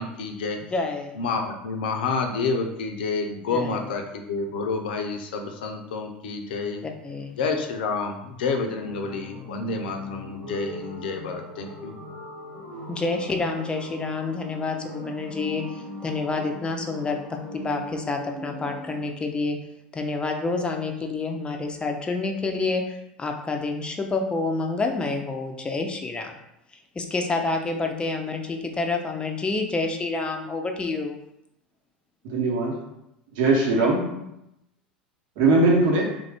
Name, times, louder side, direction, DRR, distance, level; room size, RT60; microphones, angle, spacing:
voice 1, 0.0-0.6 1.2-6.8 7.4-12.0, left 4 dB, 70° left, 4 dB, 0.5 m, -29 dB
voice 2, 0.7-1.2 3.5-3.9 6.8-7.4 12.9-19.6 19.9-26.3 26.7-31.2, left 3 dB, 20° left, 3 dB, 0.5 m, -28 dB
sound 1, 8.8-19.1, left 1 dB, 90° right, 1.4 m, -39 dB
voice 3, 32.2-32.8 33.3-34.3 35.4-36.2, right 2 dB, 60° right, -1 dB, 1.0 m, -21 dB
3.6 x 2.5 x 3.4 m, 0.83 s
hypercardioid pair, 80°, 5 cm